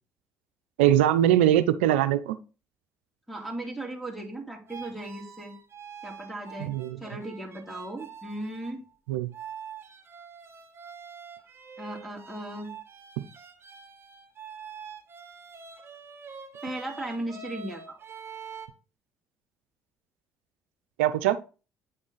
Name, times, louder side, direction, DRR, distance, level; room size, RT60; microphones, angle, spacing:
voice 1, 0.8-2.4 6.6-7.0 9.1-9.3 21.0-21.4, right 12 dB, 90° right, 0.5 m, -22 dB
voice 2, 3.3-5.5 6.0-6.7 7.0-8.8 11.8-12.7 16.6-18.0, right 1 dB, ahead, 2.7 m, -36 dB
sound 1, 4.7-8.7 9.3-18.7, right 6 dB, 40° right, 1.4 m, -45 dB
9.0 x 3.7 x 3.9 m
hypercardioid pair, 60°, 6 cm